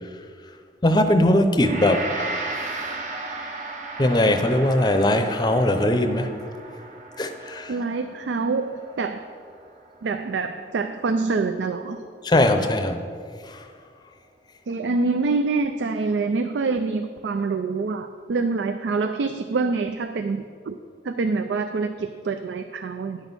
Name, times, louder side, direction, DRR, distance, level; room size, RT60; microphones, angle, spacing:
voice 1, 0.8-2.0 4.0-6.3 7.2-7.7 12.2-13.0 13.5-13.6, left 1 dB, 25° left, 6 dB, 0.6 m, -20 dB
Gong, 1.6-10.8, right 2 dB, 40° right, 0.9 m, -35 dB
voice 2, 7.7-9.3 10.0-12.0 14.7-20.8 21.0-23.2, right 4 dB, 85° right, 8 dB, 0.4 m, -26 dB
10.5 x 6.2 x 5.4 m, 2.2 s
head